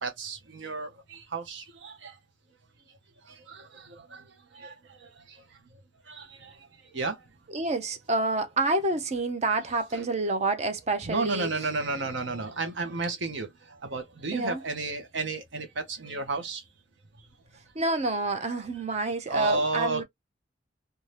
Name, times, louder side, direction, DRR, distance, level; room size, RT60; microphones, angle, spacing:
voice 1, 0.0-2.2 3.2-5.4 5.7-5.8 6.1-6.7 6.9-7.3 9.9-10.0 11.1-16.6 19.1-20.0, right 3 dB, 70° right, 0.7 m, -33 dB
voice 2, 7.5-11.5 14.3-14.6 17.8-20.0, right 2 dB, 35° right, 0.6 m, -28 dB
2.6 x 2.3 x 3.2 m
head